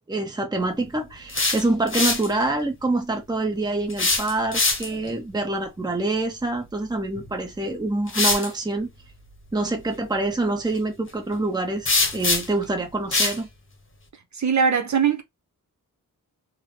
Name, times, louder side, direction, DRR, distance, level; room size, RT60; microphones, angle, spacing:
voice 1, 0.1-8.9 9.5-13.5, right 2 dB, 10° right, 0.8 m, -26 dB
sound 1, 1.1-2.3 3.9-5.1 7.1-7.3 8.1-8.5 11.9-12.6 13.1-13.4, left 3 dB, 40° left, 0.9 m, -23 dB
voice 2, 14.3-15.2, right 6 dB, 60° right, 0.8 m, -21 dB
3.5 x 2.1 x 3.2 m
wide cardioid pair, 105°, 33 cm